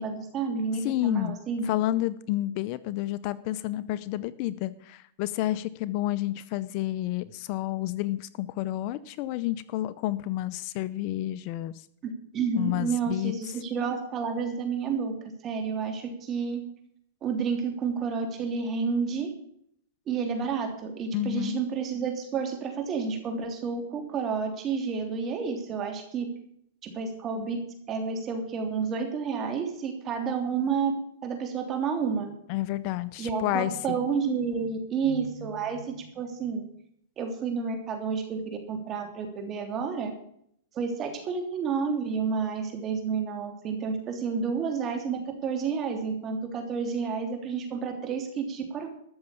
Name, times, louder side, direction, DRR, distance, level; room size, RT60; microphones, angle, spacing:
voice 1, 0.0-1.6 12.3-16.6 17.2-19.3 20.1-26.3 26.8-27.6 27.9-30.9 31.2-32.3 33.2-36.6 37.2-40.1 40.7-48.9, right 5 dB, 30° right, 5 dB, 3.2 m, -30 dB
voice 2, 0.8-1.4 1.6-11.7 12.6-13.3 21.1-21.6 32.5-34.0, left 15 dB, 45° left, 17 dB, 0.6 m, -30 dB
13.5 x 6.9 x 8.4 m, 0.68 s
hypercardioid pair, 130°, 0 cm